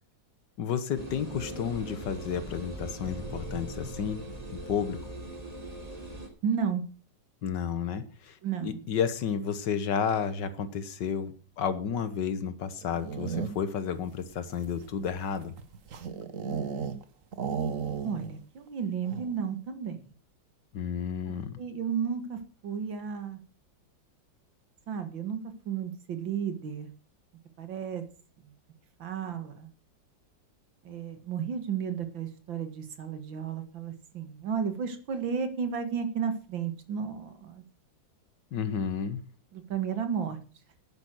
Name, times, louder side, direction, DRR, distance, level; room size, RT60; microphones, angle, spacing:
voice 1, 0.6-4.2 4.5-5.0 7.4-15.6 20.7-21.6 38.5-39.2, left 7 dB, 70° left, 13 dB, 1.8 m, -31 dB
sound 1, 0.9-6.3, right 1 dB, 20° right, 2.9 m, -40 dB
voice 2, 6.4-6.8 8.4-8.8 18.0-20.0 21.6-23.4 24.9-25.4 25.7-26.9 27.6-28.0 29.0-29.7 30.8-37.6 39.5-40.4, right 7 dB, 80° right, 9 dB, 2.4 m, -33 dB
sound 2, 12.8-13.8 14.5-17.0 17.3-18.4 18.7-18.8 19.1-19.4, right 6 dB, 50° right, 1.3 m, -34 dB
10.5 x 9.9 x 6.2 m, 0.37 s
omnidirectional pair, 2.1 m